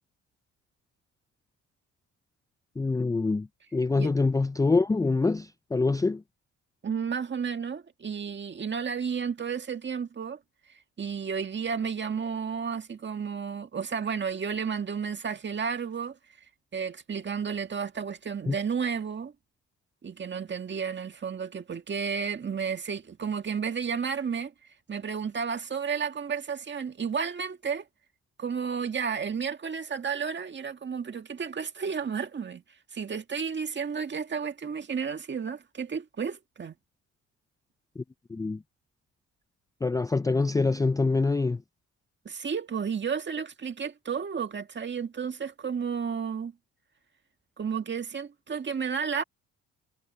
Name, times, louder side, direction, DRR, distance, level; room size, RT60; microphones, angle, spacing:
voice 1, 2.8-6.2 18.5-18.6 38.0-38.1 38.3-38.6 39.8-41.6, left 3 dB, 10° left, 0.4 m, -25 dB
voice 2, 6.8-10.4 11.0-16.2 16.7-19.3 20.0-24.5 24.9-27.9 28.4-32.6 32.9-36.8 42.3-46.5 47.6-49.2, right 6 dB, 35° right, 1.9 m, -32 dB
cardioid pair, 90°, 30 cm